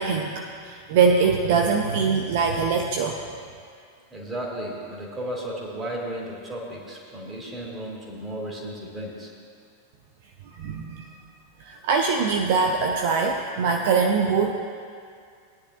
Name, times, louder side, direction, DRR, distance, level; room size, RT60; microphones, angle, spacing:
voice 1, 0.0-3.2 10.5-11.1 11.6-14.5, right 5 dB, 50° right, 3 dB, 0.7 m, -23 dB
voice 2, 4.1-9.3, right 1 dB, 15° right, -3 dB, 2.7 m, -34 dB
19.0 x 10.0 x 2.5 m, 2.2 s
figure-of-eight pair, 90°, 0 cm